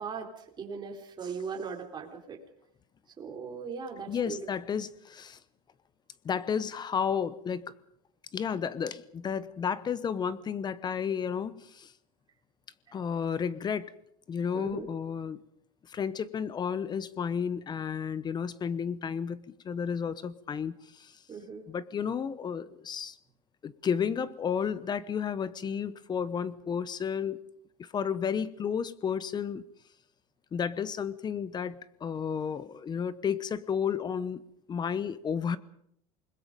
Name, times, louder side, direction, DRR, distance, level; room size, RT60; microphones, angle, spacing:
voice 1, 0.0-2.4 3.2-4.4 14.5-14.9 21.3-21.7, right 5 dB, 25° right, 2 dB, 4.0 m, -39 dB
voice 2, 4.1-5.4 6.2-7.7 8.3-11.9 12.9-13.9 14.3-15.4 15.9-21.2 21.7-23.2 23.6-27.4 27.8-29.6 30.5-34.4 34.7-35.6, left 7 dB, 25° left, 17 dB, 0.9 m, -32 dB
28.0 x 21.0 x 5.3 m, 0.72 s
supercardioid pair, 135°, 19 cm